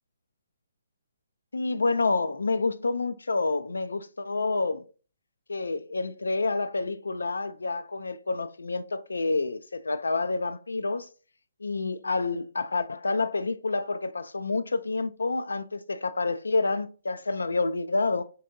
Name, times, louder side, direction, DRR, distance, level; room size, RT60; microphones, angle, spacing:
voice 1, 1.5-4.9 5.5-11.1 11.6-18.2, left 3 dB, 80° left, 0.3 m, -28 dB
3.5 x 2.6 x 2.6 m
figure-of-eight pair, 135°, 0 cm